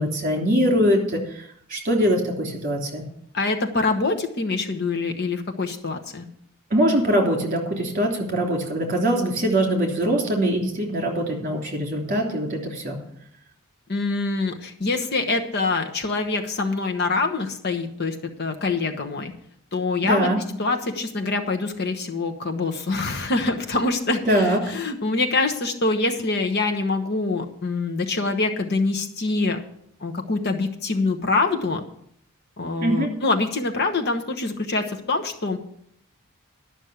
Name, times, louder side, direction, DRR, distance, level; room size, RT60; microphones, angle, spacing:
voice 1, 0.0-3.0 6.7-13.0 20.0-20.4 24.3-24.6 32.8-33.1, equal, 40° right, 1 dB, 3.1 m, -22 dB
voice 2, 3.3-6.2 13.9-19.3 19.7-20.3 20.6-29.6 30.0-31.8 32.6-35.6, left 3 dB, 50° left, 5 dB, 1.1 m, -25 dB
12.0 x 6.3 x 8.0 m, 0.69 s
head